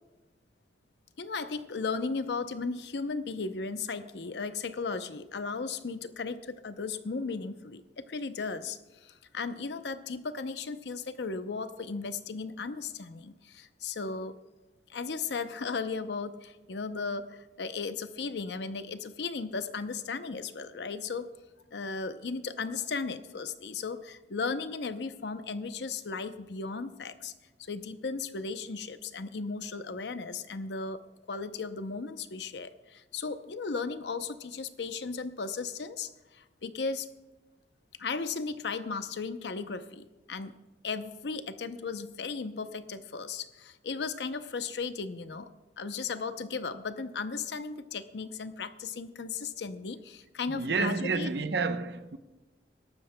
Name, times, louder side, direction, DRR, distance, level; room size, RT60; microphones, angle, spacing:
voice 1, 1.2-14.4 14.9-21.3 21.7-27.3 27.6-31.0 31.3-37.1 38.0-40.6 40.8-51.3, left 4 dB, 75° left, 0.6 m, -36 dB
voice 2, 50.5-52.2, right 4 dB, 70° right, 0.7 m, -30 dB
25.0 x 12.5 x 2.2 m
head